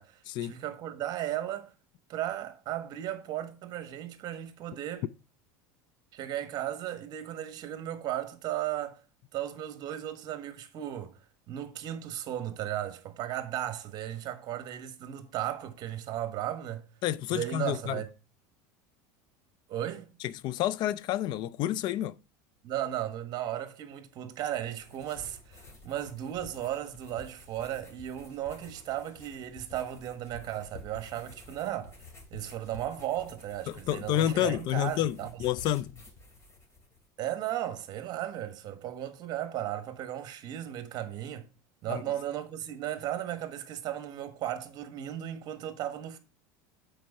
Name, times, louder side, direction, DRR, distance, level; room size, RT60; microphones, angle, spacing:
voice 1, 0.0-1.7 2.1-5.1 6.1-9.0 9.3-11.2 11.5-16.9 17.3-18.1 19.7-20.1 22.6-32.0 32.3-35.4 37.2-41.5 41.8-46.2, right 12 dB, 45° right, 1.3 m, -35 dB
voice 2, 17.0-18.0 20.2-22.2 33.7-36.0 41.9-42.0, left 12 dB, 50° left, 0.4 m, -29 dB
sound 1, 24.4-37.1, left 2 dB, 30° left, 2.6 m, -51 dB
7.5 x 4.6 x 5.4 m
supercardioid pair, 125°, 10 cm